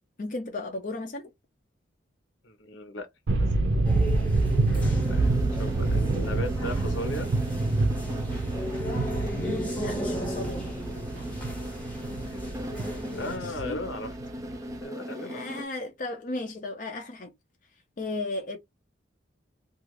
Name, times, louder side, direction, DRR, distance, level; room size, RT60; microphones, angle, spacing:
voice 1, 0.2-1.3 9.2-10.6 11.1-11.2 13.0-13.8 15.2-17.3 18.0-18.6, left 2 dB, 40° left, 0.5 m, -35 dB
voice 2, 2.4-3.1 4.7-7.3 12.3-12.5 12.9-14.1 14.8-15.4, left 1 dB, 75° left, 0.8 m, -37 dB
sound 1, 3.3-14.8, right 2 dB, 70° right, 0.5 m, -27 dB
sound 2, 3.8-13.4, equal, 10° left, 0.7 m, -36 dB
sound 3, 5.0-15.6, equal, 15° right, 0.4 m, -38 dB
2.4 x 2.4 x 3.1 m
head